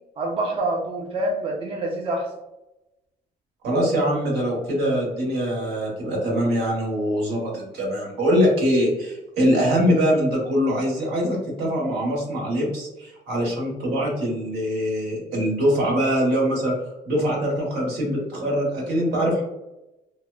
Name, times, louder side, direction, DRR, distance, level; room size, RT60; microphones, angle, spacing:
voice 1, 0.2-2.3, right 1 dB, 35° right, 0 dB, 0.5 m, -26 dB
voice 2, 3.6-16.7 17.0-19.4, equal, 80° right, -2 dB, 1.0 m, -23 dB
2.8 x 2.1 x 2.3 m, 0.94 s
cardioid pair, 110°, 17 cm